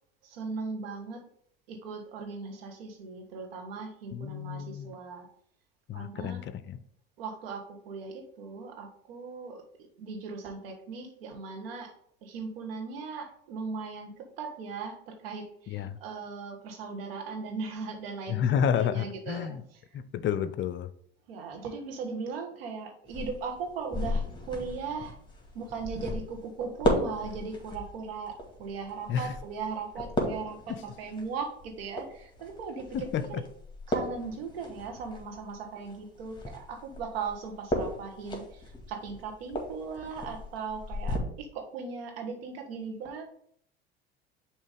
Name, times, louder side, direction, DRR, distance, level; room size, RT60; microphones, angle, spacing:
voice 1, 0.2-1.2 1.7-5.3 5.9-6.4 7.2-11.9 12.2-19.8 21.3-25.2 25.5-33.4 33.9-43.2, right 5 dB, 80° right, 1.4 m, -38 dB
voice 2, 4.1-4.9 5.9-6.8 15.7-16.0 18.3-19.6 20.1-20.9 29.1-29.3 30.7-30.8 32.9-33.2, left 8 dB, 40° left, 0.6 m, -30 dB
sound 1, 23.0-41.2, equal, 15° left, 2.0 m, -36 dB
6.5 x 3.1 x 5.1 m
hypercardioid pair, 75°, 29 cm